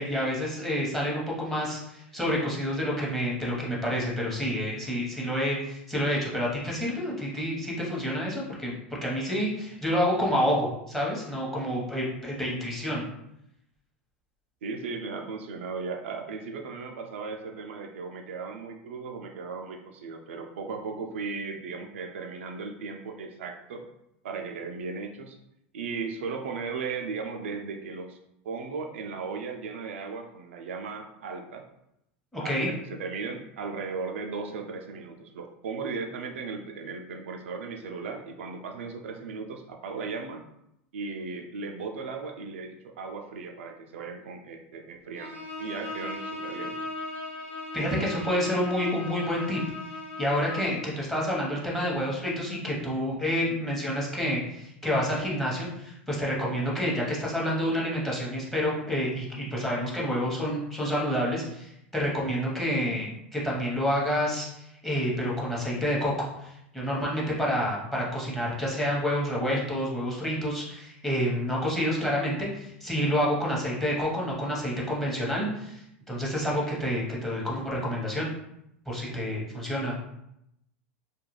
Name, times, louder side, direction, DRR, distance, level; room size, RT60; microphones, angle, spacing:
voice 1, 0.0-13.0 32.3-32.7 47.7-49.6 50.2-78.3 78.9-80.0, equal, 5° left, -4 dB, 0.9 m, -28 dB
voice 2, 14.6-23.9 24.2-25.4 25.7-28.2 28.4-31.6 32.4-40.4 40.9-46.8, right 4 dB, 80° right, 3 dB, 0.4 m, -36 dB
Bowed string instrument, 45.1-50.8, left 2 dB, 75° left, 1.1 m, -37 dB
2.3 x 2.2 x 3.1 m, 0.81 s
hypercardioid pair, 105°, 7 cm